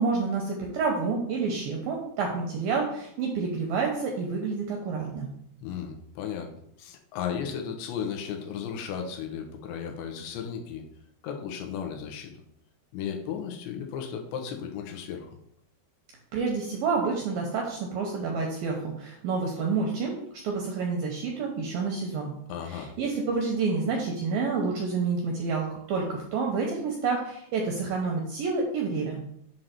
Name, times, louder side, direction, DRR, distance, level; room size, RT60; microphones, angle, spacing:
voice 1, 0.0-5.3 16.3-20.2 20.4-22.3 22.7-29.2, right 4 dB, 85° right, 0 dB, 2.1 m, -29 dB
voice 2, 5.6-6.5 6.8-10.8 11.2-12.3 12.9-15.4 22.5-22.9, left 7 dB, 85° left, 3 dB, 3.0 m, -35 dB
7.5 x 2.6 x 5.7 m, 0.73 s
omnidirectional pair, 5.0 m